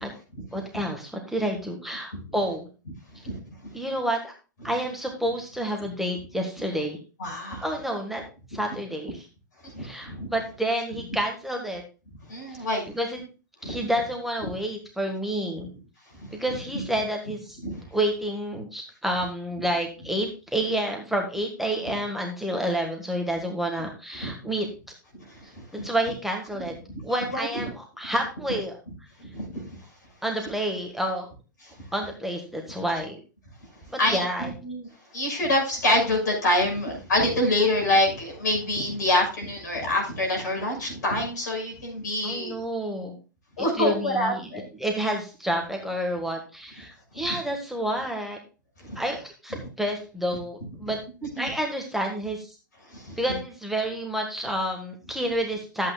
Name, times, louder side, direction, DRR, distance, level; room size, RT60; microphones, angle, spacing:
voice 1, 0.5-2.7 3.7-4.3 4.6-7.0 7.6-8.2 8.5-9.3 9.8-11.8 12.9-13.3 13.6-15.7 16.3-17.6 17.9-24.7 25.7-26.7 27.0-28.8 30.2-31.3 31.9-33.2 33.9-34.5 42.2-43.1 43.6-48.4 48.9-51.0 51.4-52.5 53.2-55.9, right 1 dB, ahead, 2 dB, 1.6 m, -29 dB
voice 2, 7.2-7.7 9.7-10.3 12.3-12.8 13.6-13.8 17.6-17.7 24.2-24.3 25.6-25.7 27.3-27.5 29.3-29.7 34.0-34.2 34.7-34.8 35.1-42.5 43.6-44.6 48.8-49.0 51.4-51.5 52.9-53.2, left 1 dB, 60° left, 1 dB, 6.2 m, -25 dB
13.5 x 8.3 x 2.4 m, 0.32 s
figure-of-eight pair, 100°, 11 cm